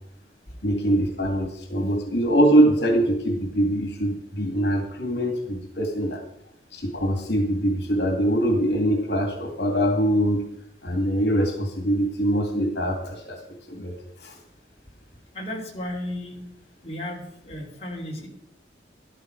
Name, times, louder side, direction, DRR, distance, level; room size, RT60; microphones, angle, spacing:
voice 1, 0.6-6.2 6.7-10.4 10.8-13.4 13.7-14.4, right 1 dB, 70° left, 3 dB, 2.3 m, -23 dB
voice 2, 15.3-16.4 16.8-18.3, left 1 dB, 35° left, -2 dB, 3.2 m, -34 dB
13.0 x 12.5 x 4.7 m, 0.76 s
head